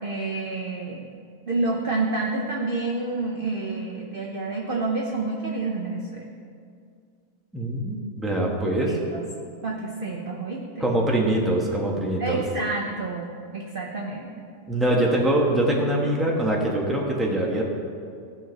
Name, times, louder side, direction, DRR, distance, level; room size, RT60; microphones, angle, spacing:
voice 1, 0.0-1.0 1.5-6.2 8.4-8.5 8.8-9.2 9.6-10.9 12.2-14.5 15.0-15.1 16.0-16.1, right 3 dB, 45° right, -1 dB, 0.7 m, -29 dB
voice 2, 7.5-8.9 10.8-12.4 14.7-17.6, right 1 dB, ahead, -2 dB, 1.0 m, -23 dB
15.5 x 5.7 x 4.0 m, 2.3 s
omnidirectional pair, 1.8 m